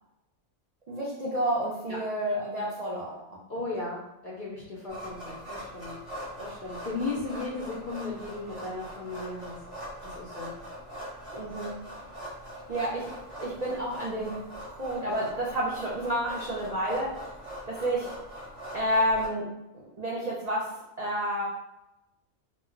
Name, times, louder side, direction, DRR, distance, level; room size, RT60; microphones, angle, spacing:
voice 1, 0.9-3.4 11.3-11.8 12.7-13.1 13.4-14.4 14.7-17.1 17.7-18.1 18.7-19.5 20.0-21.4, equal, 70° right, -6 dB, 0.3 m, -30 dB
voice 2, 3.5-5.9 6.4-9.6 10.1-10.5, left 3 dB, 60° left, -6 dB, 0.5 m, -36 dB
sound 1, 4.9-19.3, equal, 30° right, 0.7 m, -42 dB
2.3 x 2.1 x 3.7 m, 0.91 s
omnidirectional pair, 1.4 m